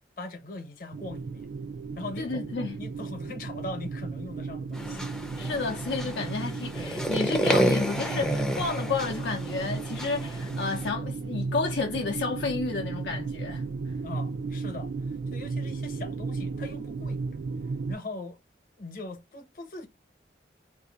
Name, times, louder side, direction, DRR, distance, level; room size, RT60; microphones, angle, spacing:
voice 1, 0.2-1.5 2.0-5.1 14.0-14.9 15.3-17.2 17.9-18.4 18.8-19.9, left 2 dB, 50° left, 0.9 m, -40 dB
sound 1, 0.9-18.0, right 4 dB, 80° right, 0.4 m, -35 dB
voice 2, 2.2-2.8 5.4-13.9, left 4 dB, 85° left, 0.6 m, -31 dB
sound 2, 4.7-10.9, equal, 5° left, 0.4 m, -30 dB
2.7 x 2.4 x 3.9 m
head